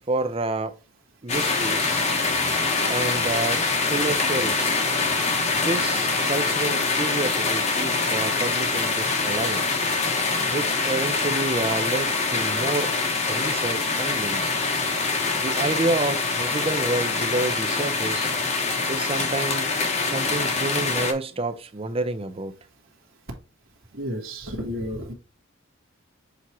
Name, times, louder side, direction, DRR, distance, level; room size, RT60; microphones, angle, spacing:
voice 1, 0.1-0.8 1.2-2.0 2.9-4.8 5.5-9.6 10.5-13.0 13.3-14.6 15.4-18.3 18.9-19.7 20.0-22.5, right 2 dB, 25° right, 0.6 m, -29 dB
sound 1, 1.3-21.1, left 3 dB, 35° left, 1.0 m, -24 dB
voice 2, 23.9-25.1, equal, 75° right, 1.7 m, -31 dB
7.0 x 2.9 x 4.7 m
head